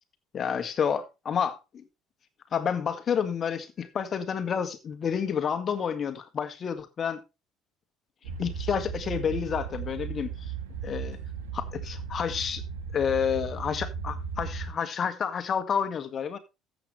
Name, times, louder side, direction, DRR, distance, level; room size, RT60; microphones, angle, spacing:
voice 1, 0.3-1.8 2.5-7.2 8.4-10.3 10.8-11.2 11.5-12.6 12.9-16.4, left 7 dB, 45° left, 1.9 m, -29 dB
sound 1, 8.2-14.7, right 6 dB, 75° right, 2.6 m, -36 dB
14.0 x 8.0 x 3.3 m
hypercardioid pair, 60°, 0 cm